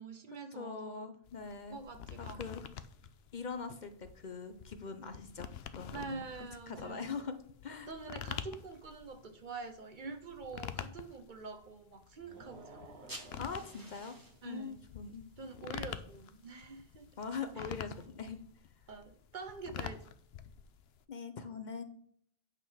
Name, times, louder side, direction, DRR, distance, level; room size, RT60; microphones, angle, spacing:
voice 1, 0.0-1.1 1.7-2.4 5.9-7.2 7.9-13.5 14.4-14.8 15.4-17.1 17.6-17.7 18.9-20.0, right 4 dB, 55° right, 9 dB, 0.9 m, -46 dB
voice 2, 0.5-1.8 2.2-2.6 3.3-6.3 6.7-7.4 7.6-7.9 13.4-14.1 14.4-15.2 17.2-18.4 21.1-21.8, left 5 dB, 50° left, 9 dB, 0.8 m, -42 dB
sound 1, 1.3-21.0, left 9 dB, 85° left, 0.9 m, -47 dB
sound 2, 12.2-14.5, right 3 dB, 85° right, 1.4 m, -55 dB
sound 3, 12.9-18.1, right 1 dB, 20° right, 1.4 m, -55 dB
9.0 x 3.8 x 6.2 m, 0.63 s
omnidirectional pair, 1.0 m